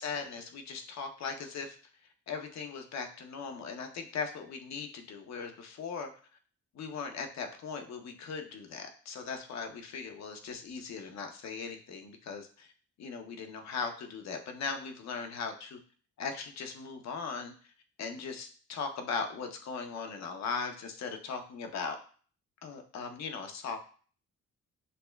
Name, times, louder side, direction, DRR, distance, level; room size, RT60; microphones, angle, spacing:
voice 1, 0.0-1.8 2.3-6.1 6.7-12.7 13.0-15.8 16.2-17.5 18.0-22.0 22.6-23.8, left 5 dB, 60° left, 5 dB, 0.7 m, -39 dB
6.5 x 2.2 x 2.2 m, 0.43 s
cardioid pair, 90°, 30 cm